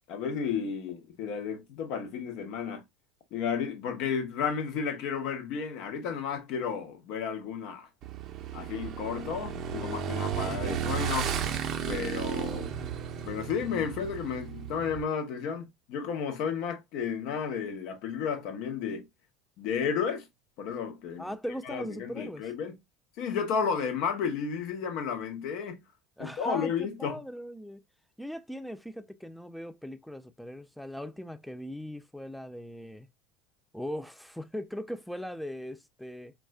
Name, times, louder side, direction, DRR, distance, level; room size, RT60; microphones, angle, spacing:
voice 1, 0.1-2.8 3.3-7.9 8.5-11.3 11.9-12.7 13.2-19.1 19.6-20.3 20.6-21.3 21.6-22.7 23.2-25.8 26.2-27.2, left 6 dB, 60° left, 0.8 m, -32 dB
Motorcycle / Engine, 8.0-15.0, right 7 dB, 50° right, 0.5 m, -34 dB
voice 2, 21.2-22.5 26.2-27.8 28.2-33.1 33.7-36.3, equal, ahead, 0.4 m, -39 dB
4.1 x 2.3 x 2.2 m
hypercardioid pair, 70°, 0 cm